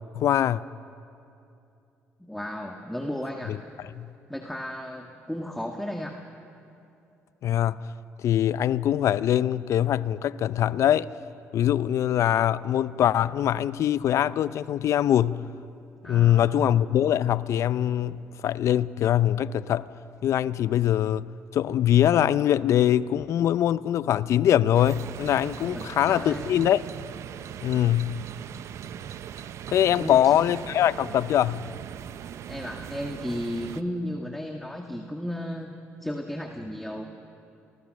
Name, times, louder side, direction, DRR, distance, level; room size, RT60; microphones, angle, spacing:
voice 1, 0.1-0.6 3.5-3.6 4.0-4.1 7.4-7.9 8.2-11.1 11.5-15.4 16.0-19.9 20.2-26.8 27.6-28.2 29.7-31.6, left 11 dB, 65° left, 0.6 m, -23 dB
voice 2, 2.2-3.6 4.3-6.2 16.0-16.5 25.7-26.4 29.9-30.5 32.5-35.7 36.0-37.0, equal, 5° left, 1.7 m, -34 dB
sound 1, 24.7-33.8, right 9 dB, 65° right, 0.7 m, -39 dB
28.0 x 20.0 x 6.5 m
supercardioid pair, 70°, 5 cm